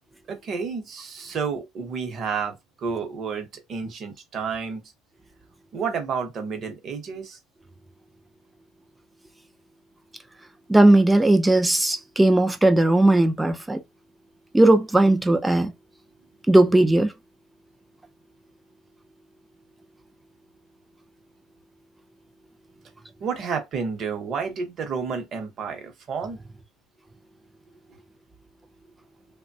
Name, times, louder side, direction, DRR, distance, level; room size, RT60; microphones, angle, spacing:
voice 1, 0.3-4.8 5.7-7.4 23.2-26.4, right 5 dB, 35° right, 0.8 m, -30 dB
voice 2, 10.7-13.8 14.5-15.7 16.5-17.1, right 1 dB, 5° right, 0.3 m, -17 dB
3.1 x 2.1 x 2.6 m
cardioid pair, 165°, 0 cm